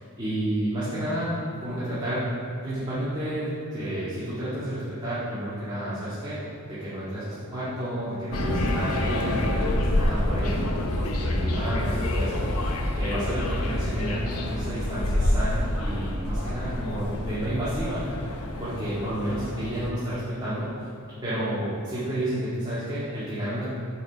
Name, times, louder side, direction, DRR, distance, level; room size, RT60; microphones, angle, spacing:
voice 1, 0.0-1.3 1.6-2.3 2.6-6.4 6.6-18.1 18.6-20.7 21.2-23.7, right 1 dB, 20° right, -13 dB, 2.0 m, -31 dB
sound 1, 8.3-19.9, left 1 dB, 85° left, 0.8 m, -27 dB
9.1 x 4.9 x 5.2 m, 2.5 s
head